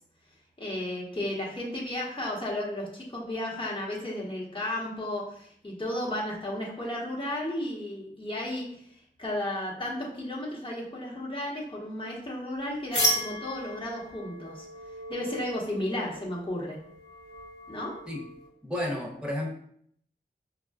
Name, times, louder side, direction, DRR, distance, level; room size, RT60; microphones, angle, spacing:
voice 1, 0.6-8.7 9.2-14.7 15.1-16.8 17.7-17.9, left 1 dB, 30° left, -4 dB, 1.1 m, -33 dB
sound 1, 12.9-18.5, equal, 85° left, 1.2 m, -34 dB
voice 2, 18.6-19.5, left 1 dB, 5° right, -1 dB, 0.8 m, -31 dB
5.3 x 2.3 x 2.3 m, 0.66 s
wide cardioid pair, 70°, 18 cm